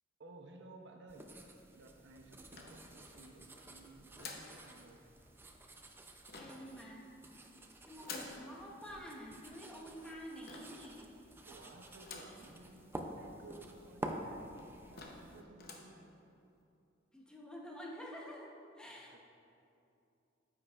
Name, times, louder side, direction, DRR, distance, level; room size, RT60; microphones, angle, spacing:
voice 1, 0.2-1.3 1.7-5.0 11.4-14.4 14.9-16.2 19.1-19.2, right 2 dB, 65° right, 3 dB, 0.6 m, -56 dB
sound 1, 1.1-15.4, right 1 dB, 10° right, 0.4 m, -50 dB
sound 2, 2.5-3.3 4.2-4.6 6.3-6.7 8.0-8.4 10.5-10.9 12.0-12.4 12.9-13.0 13.2-13.3 14.1-14.2 14.6-14.7 15.0-15.3 15.6-15.9, left 4 dB, 55° left, 0.8 m, -48 dB
voice 2, 6.3-7.1 7.5-11.1 17.1-19.2, equal, 5° left, -3 dB, 0.8 m, -49 dB
9.5 x 7.5 x 2.4 m, 2.7 s
head